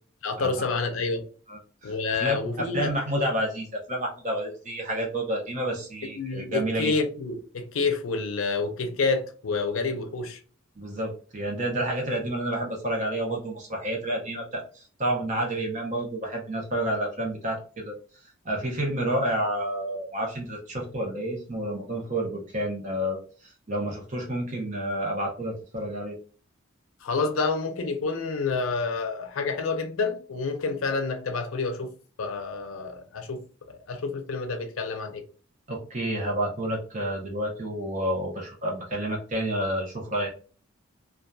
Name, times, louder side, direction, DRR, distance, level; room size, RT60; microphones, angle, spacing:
voice 1, 0.2-1.3 1.8-3.2 6.2-10.4 27.0-31.9 32.2-33.4 33.7-35.2, left 4 dB, 80° left, 0.5 m, -28 dB
voice 2, 1.5-6.9 10.8-17.9 18.4-26.2 35.7-40.3, right 1 dB, 35° right, 0.7 m, -30 dB
2.6 x 2.3 x 2.3 m
head